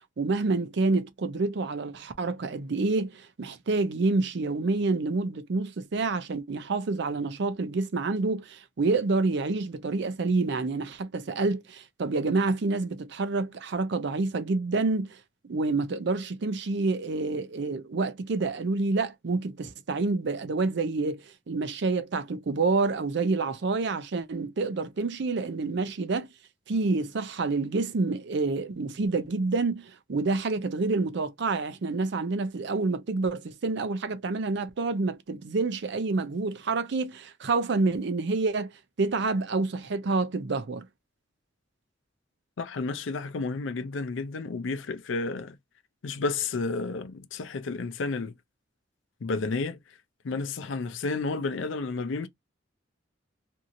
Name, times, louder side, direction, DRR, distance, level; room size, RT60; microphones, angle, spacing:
voice 1, 0.2-15.2 15.4-26.3 26.7-38.7 39.0-40.9, right 3 dB, 60° right, 0.5 m, -28 dB
voice 2, 42.6-45.6 46.0-48.3 49.2-49.8 50.2-52.3, left 3 dB, 70° left, 0.5 m, -31 dB
2.7 x 2.7 x 2.5 m
head